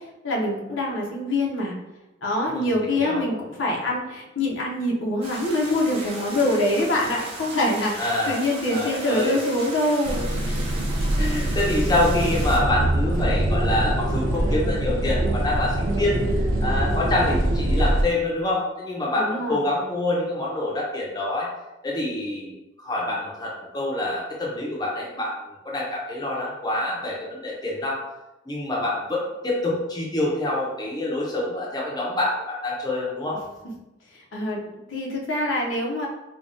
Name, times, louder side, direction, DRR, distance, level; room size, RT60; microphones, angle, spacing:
voice 1, 0.2-1.7 2.2-10.3 19.1-19.6 34.3-36.1, left 1 dB, 80° left, -2 dB, 0.8 m, -25 dB
voice 2, 2.5-3.3 8.0-8.4 8.7-9.4 11.2-16.2 16.6-21.5 21.8-28.0 28.5-33.4, left 1 dB, 20° left, -4 dB, 0.6 m, -26 dB
sound 1, 5.2-12.6, right 2 dB, 30° right, 0.7 m, -37 dB
sound 2, 10.0-18.0, right 1 dB, 80° right, 0.5 m, -23 dB
4.7 x 2.2 x 2.6 m, 0.98 s
head